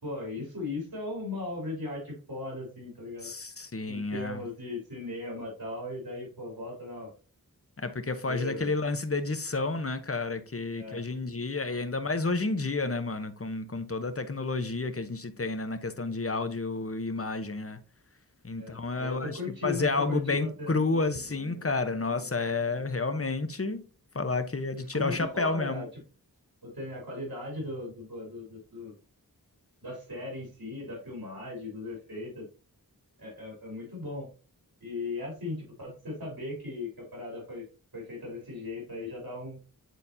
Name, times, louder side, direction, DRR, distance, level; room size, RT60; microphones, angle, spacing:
voice 1, 0.0-3.3 3.9-7.1 8.2-8.7 10.8-11.0 18.5-20.7 24.9-25.9 26.6-28.9 29.8-32.5 33.2-34.3 34.8-37.6 37.9-39.6, left 2 dB, 80° right, 3.4 m, -37 dB
voice 2, 3.2-4.4 7.8-17.8 18.4-23.8 24.1-25.8, left 3 dB, 40° left, 0.9 m, -30 dB
Dog, 20.7-23.5 23.8-23.9 25.0-25.6 27.6-27.7, equal, 60° right, 1.8 m, -51 dB
9.2 x 4.1 x 2.7 m
wide cardioid pair, 40°, 36 cm